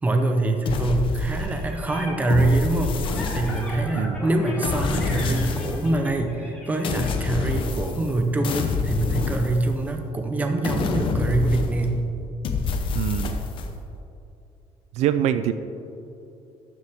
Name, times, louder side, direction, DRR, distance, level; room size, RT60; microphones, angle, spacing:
voice 1, 0.0-3.0 3.3-12.0, right 2 dB, 15° right, 5 dB, 0.7 m, -24 dB
sound 1, 0.7-1.8 2.3-3.9 4.6-6.0 6.8-8.2 8.4-10.0 10.6-12.0 12.4-13.7, left 4 dB, 45° left, 0.8 m, -27 dB
sound 2, 1.3-7.1, left 1 dB, 10° left, 1.6 m, -38 dB
voice 2, 12.9-13.5 14.9-15.5, right 10 dB, 75° right, 11 dB, 0.4 m, -24 dB
13.0 x 7.0 x 3.5 m, 2.7 s
cardioid pair, 170°, 12 cm